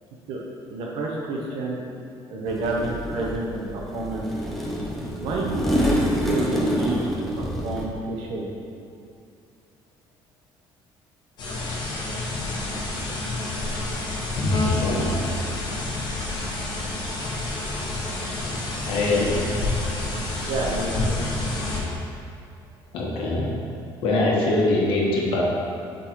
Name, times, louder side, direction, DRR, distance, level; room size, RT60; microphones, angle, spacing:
voice 1, 0.7-1.8 2.3-4.3 5.2-8.5 19.1-19.2 20.5-21.2, right 2 dB, 80° right, -2 dB, 0.8 m, -29 dB
sound 1, 2.5-7.8, equal, ahead, 0.7 m, -27 dB
sound 2, 11.4-21.8, left 2 dB, 55° left, 1.2 m, -28 dB
voice 2, 14.7-15.2 18.8-19.4 22.9-23.7 24.0-25.4, left 2 dB, 75° left, -3 dB, 1.2 m, -23 dB
8.2 x 3.8 x 3.0 m, 2.5 s
cardioid pair, 150°, 9 cm